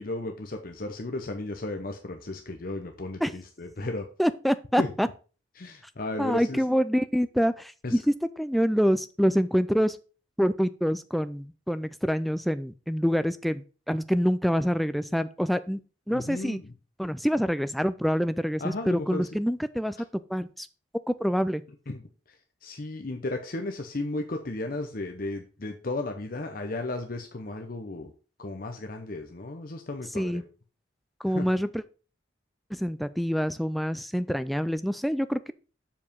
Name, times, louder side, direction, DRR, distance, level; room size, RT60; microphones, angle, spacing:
voice 1, 0.0-4.1 4.8-4.9 5.6-6.6 7.8-8.0 16.1-16.6 18.6-19.3 21.9-22.0 22.6-28.1 28.4-30.4 31.3-31.5, left 2 dB, 45° left, 5 dB, 0.8 m, -34 dB
voice 2, 4.2-5.1 6.2-10.0 10.4-15.8 16.1-16.6 17.0-20.0 20.3-20.7 21.1-21.6 30.2-30.5 31.2-31.8 32.7-35.5, equal, ahead, 12 dB, 0.4 m, -26 dB
7.3 x 4.8 x 5.3 m, 0.36 s
head